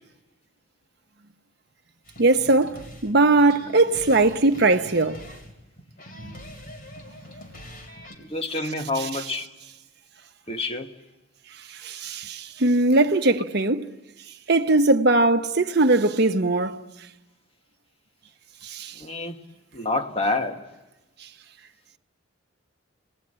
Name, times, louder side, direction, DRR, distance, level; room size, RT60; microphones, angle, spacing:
sound 1, 2.1-8.2, equal, 45° left, 3.7 m, -43 dB
voice 1, 2.2-5.2 6.2-6.3 11.8-13.8 14.5-16.8 18.7-18.9, right 2 dB, 50° right, 1.0 m, -20 dB
voice 2, 8.2-9.5 10.5-10.9 19.0-19.4 19.7-20.7, left 2 dB, 30° left, 1.5 m, -28 dB
28.5 x 20.0 x 8.8 m
head